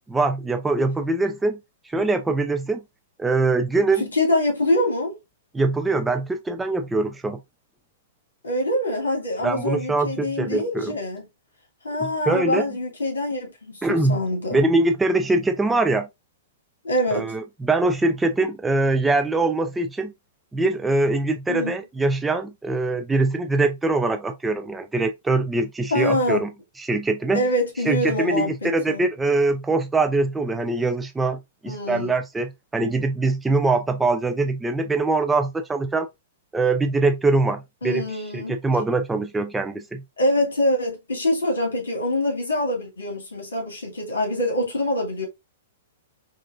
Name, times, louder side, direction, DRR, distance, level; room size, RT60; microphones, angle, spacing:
voice 1, 0.1-1.6 1.9-2.8 3.2-4.1 5.5-7.4 9.4-11.0 12.0-12.7 13.8-14.2 14.5-16.1 17.1-20.1 20.5-26.5 26.8-27.5 27.8-36.1 36.5-40.0, right 2 dB, 10° right, 0.4 m, -23 dB
voice 2, 4.0-5.1 8.4-11.2 11.8-14.7 16.8-17.3 21.5-21.8 25.9-26.4 27.3-29.1 31.7-32.1 37.8-38.6 40.2-45.3, left 1 dB, 65° left, 2.0 m, -25 dB
5.2 x 2.5 x 2.5 m
figure-of-eight pair, 105°, 0 cm